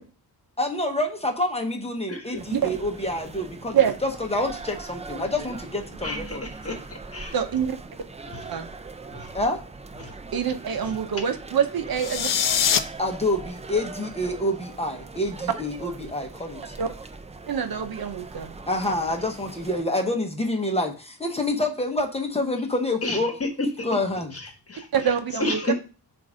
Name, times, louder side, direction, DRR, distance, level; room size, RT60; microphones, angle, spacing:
voice 1, 0.6-6.4 9.3-9.6 13.0-16.7 18.7-23.4 23.8-24.3, left 1 dB, 15° left, 3 dB, 0.9 m, -27 dB
sound 1, 2.4-19.8, right 3 dB, 20° right, 0.3 m, -40 dB
voice 2, 6.0-7.3 8.3-8.5 9.1-9.3 10.0-10.1 10.8-10.9 23.0-23.5 23.8-23.9 24.3-24.9 25.4-25.7, left 1 dB, 35° left, 4 dB, 1.2 m, -31 dB
voice 3, 7.3-7.8 8.5-8.7 10.3-12.3 16.8-16.9 17.5-18.6 24.9-25.7, right 8 dB, 65° right, 8 dB, 0.8 m, -25 dB
sound 2, 11.9-12.8, left 8 dB, 55° left, 0.5 m, -22 dB
7.5 x 2.6 x 4.9 m, 0.35 s
wide cardioid pair, 150°, 40 cm